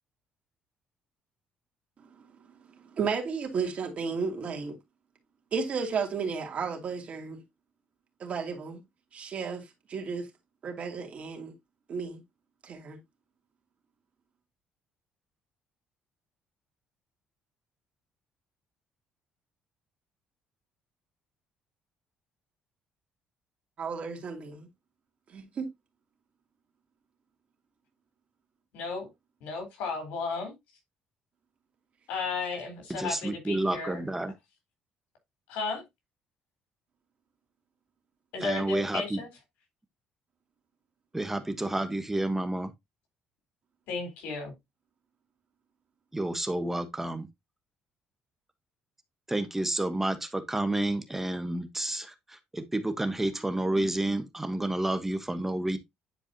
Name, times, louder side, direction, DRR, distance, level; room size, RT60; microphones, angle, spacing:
voice 1, 2.9-4.7 5.5-7.4 8.2-8.8 9.1-9.6 9.9-10.3 10.6-11.5 11.9-12.2 12.6-13.0 23.8-24.7 25.3-25.7, right 5 dB, 50° right, 2.6 m, -33 dB
voice 2, 28.7-29.1 29.4-30.5 32.1-34.0 35.5-35.8 38.3-39.3 43.9-44.5, left 4 dB, 85° left, 3.7 m, -34 dB
voice 3, 32.9-34.3 38.4-39.2 41.1-42.7 46.1-47.3 49.3-55.8, right 1 dB, 10° right, 1.1 m, -30 dB
10.0 x 4.7 x 2.8 m
cardioid pair, 90°, 3 cm